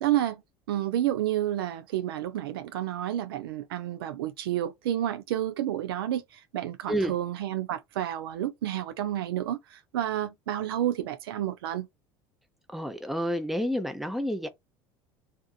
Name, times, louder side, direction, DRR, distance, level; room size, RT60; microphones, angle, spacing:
voice 1, 0.0-0.4 0.7-11.9, right 12 dB, 80° right, 0.4 m, -30 dB
voice 2, 12.7-14.5, equal, ahead, 0.6 m, -29 dB
2.6 x 2.5 x 2.3 m
hypercardioid pair, 80°, 12 cm